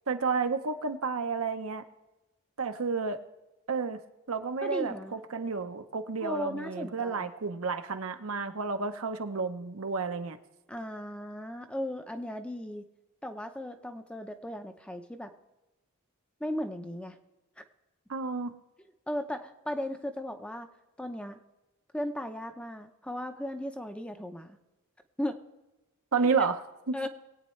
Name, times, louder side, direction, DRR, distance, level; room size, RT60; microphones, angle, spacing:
voice 1, 0.1-1.8 2.6-3.2 3.7-4.0 4.3-10.4 18.1-18.6 26.1-26.6 26.9-27.1, right 4 dB, 70° right, 7 dB, 0.8 m, -31 dB
voice 2, 4.6-5.2 6.2-7.3 10.7-12.9 13.2-15.3 16.4-17.2 19.1-20.7 21.0-21.4 21.9-24.6 25.2-25.4 26.4-26.5 26.9-27.1, left 1 dB, 5° left, 7 dB, 0.6 m, -36 dB
22.5 x 8.8 x 3.2 m, 1.1 s
head